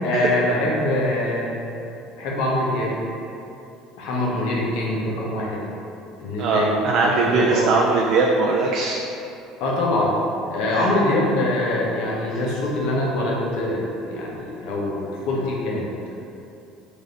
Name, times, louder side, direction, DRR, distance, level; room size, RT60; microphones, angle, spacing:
voice 1, 0.0-1.5 2.2-3.0 4.0-5.6 6.2-7.7 9.6-10.2 10.5-15.9, left 1 dB, 75° left, -4 dB, 0.8 m, -24 dB
voice 2, 6.4-9.0 10.7-10.9, right 3 dB, 60° right, -1 dB, 0.3 m, -20 dB
3.2 x 2.6 x 4.0 m, 2.8 s
supercardioid pair, 90°, 0 cm